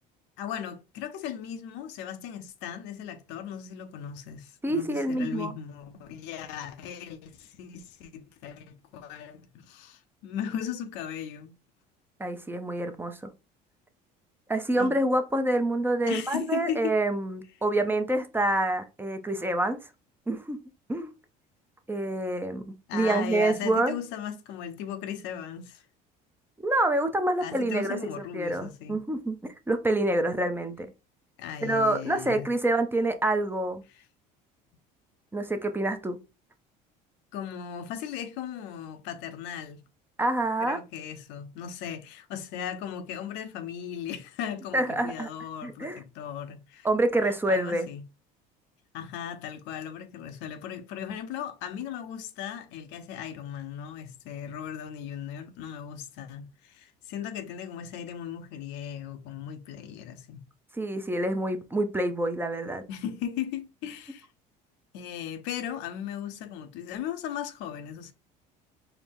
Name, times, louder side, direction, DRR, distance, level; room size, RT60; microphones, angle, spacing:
voice 1, 0.4-11.5 14.8-14.9 16.1-17.0 22.9-25.8 27.4-29.0 31.4-32.5 33.9-34.0 37.3-39.8 40.6-46.9 47.5-48.0 48.9-60.4 62.9-64.3 64.9-68.1, left 9 dB, 75° left, 0.6 m, -37 dB
voice 2, 4.6-5.5 12.2-13.3 14.5-19.8 20.3-20.6 20.9-21.1 21.9-23.9 26.6-28.0 28.3-30.9 31.6-33.8 35.3-36.2 40.2-40.8 44.7-45.3 45.6-46.0 46.8-47.9 60.8-62.8, right 1 dB, 10° right, 0.6 m, -27 dB
4.5 x 2.1 x 3.5 m
supercardioid pair, 100°, 19 cm